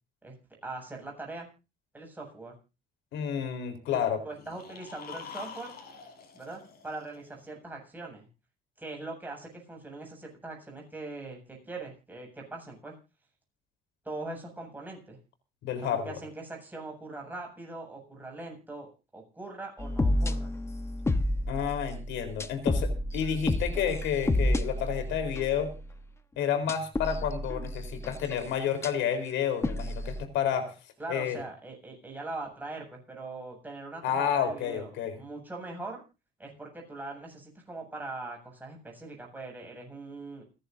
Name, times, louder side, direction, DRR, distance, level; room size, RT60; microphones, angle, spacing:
voice 1, 0.6-1.5 1.9-2.6 4.2-5.7 6.3-8.3 8.8-12.9 14.0-15.2 15.8-18.9 19.1-20.5 31.0-34.9 35.2-36.0 36.4-40.4, right 2 dB, 10° right, 0 dB, 7.6 m, -41 dB
voice 2, 3.1-4.2 15.6-16.2 21.5-25.7 26.4-30.7 31.1-31.4 34.0-35.2, left 8 dB, 75° left, 8 dB, 4.1 m, -30 dB
sound 1, 4.3-7.4, left 7 dB, 55° left, 5.7 m, -46 dB
sound 2, 19.8-26.0 26.6-28.4 28.8-28.9 29.6-30.2, left 1 dB, 15° left, 1.1 m, -30 dB
29.0 x 11.0 x 2.7 m, 0.31 s
cardioid pair, 140°, 19 cm